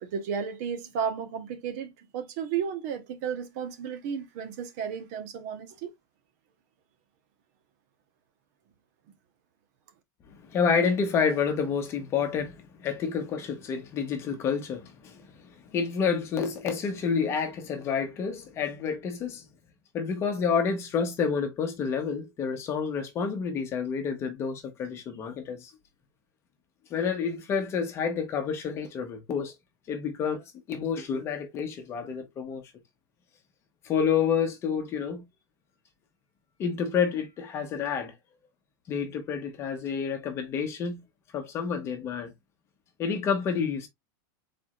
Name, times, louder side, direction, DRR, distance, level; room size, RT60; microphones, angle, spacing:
voice 1, 0.0-5.9, right 7 dB, 45° right, 1.0 m, -33 dB
voice 2, 10.5-19.4 19.9-25.7 26.9-29.5 29.9-30.4 30.7-32.6 33.8-35.2 36.6-38.1 38.9-41.0 41.3-42.3 43.0-43.9, left 6 dB, 20° left, 1.0 m, -29 dB
4.7 x 4.2 x 2.4 m
supercardioid pair, 170°, 12 cm